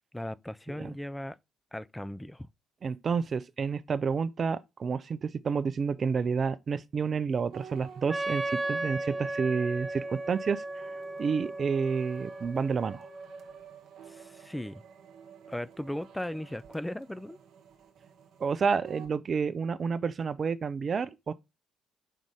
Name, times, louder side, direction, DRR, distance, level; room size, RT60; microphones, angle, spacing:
voice 1, 0.1-1.4 1.7-2.5 14.1-14.8 15.5-17.4, left 1 dB, 10° left, 0.4 m, -37 dB
voice 2, 2.8-10.6 11.2-13.1 18.4-21.3, right 5 dB, 50° right, 0.4 m, -30 dB
sound 1, 7.5-19.2, right 7 dB, 70° right, 1.0 m, -51 dB
Wind instrument woodwind instrument, 8.1-13.7, right 2 dB, 20° right, 0.9 m, -36 dB
5.4 x 3.8 x 4.7 m
hypercardioid pair, 45°, 0 cm